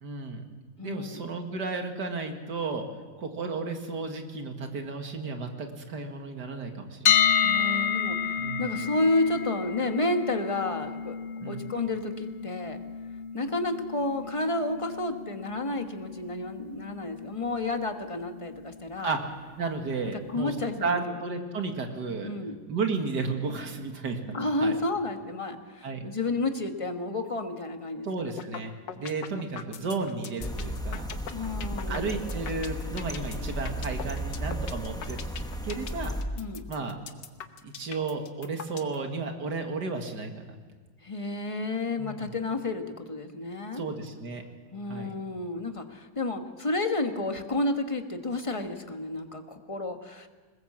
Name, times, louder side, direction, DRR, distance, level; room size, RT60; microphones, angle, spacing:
voice 1, 0.0-0.4 0.8-2.9 3.2-7.1 8.4-8.7 11.4-11.6 19.0-19.2 19.6-20.6 20.8-22.3 22.7-24.4 24.6-24.8 25.8-26.0 28.0-31.1 31.9-35.2 35.6-36.1 36.7-37.0 37.6-40.5 42.0-42.3 43.7-44.4 44.9-45.1, right 4 dB, 70° right, 5 dB, 2.5 m, -33 dB
voice 2, 0.8-1.2 7.4-11.2 11.5-12.8 13.3-19.2 20.1-21.2 22.2-22.5 24.3-28.4 31.3-32.1 36.4-36.6 41.0-43.8 44.7-50.3, left 2 dB, 20° left, 6 dB, 1.2 m, -31 dB
sound 1, 7.1-19.0, left 7 dB, 55° left, 0.7 m, -31 dB
sound 2, 28.4-28.6 28.9-39.0, left 8 dB, 85° left, 1.8 m, -40 dB
sound 3, 30.4-36.2, equal, 5° left, 1.0 m, -34 dB
21.0 x 20.5 x 7.5 m, 1.4 s
omnidirectional pair, 1.9 m